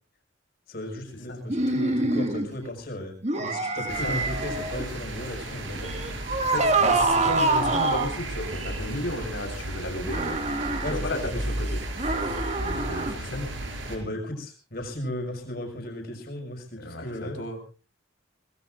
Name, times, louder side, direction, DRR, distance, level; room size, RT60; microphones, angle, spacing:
voice 1, 0.7-6.2 10.8-11.2 13.9-17.4, left 1 dB, 55° left, 3 dB, 5.7 m, -35 dB
sound 1, 1.5-2.5 3.2-4.8 5.8-8.2 10.1-10.9 12.0-13.1, right 2 dB, 35° right, 1.9 m, -25 dB
sound 2, 3.9-14.0, right 1 dB, 75° right, 5.4 m, -34 dB
voice 2, 6.5-10.4 10.9-11.3 11.6-11.7 12.6-13.6 16.8-17.6, left 1 dB, 75° left, 4 dB, 4.7 m, -33 dB
25.0 x 19.5 x 2.6 m, 0.36 s
head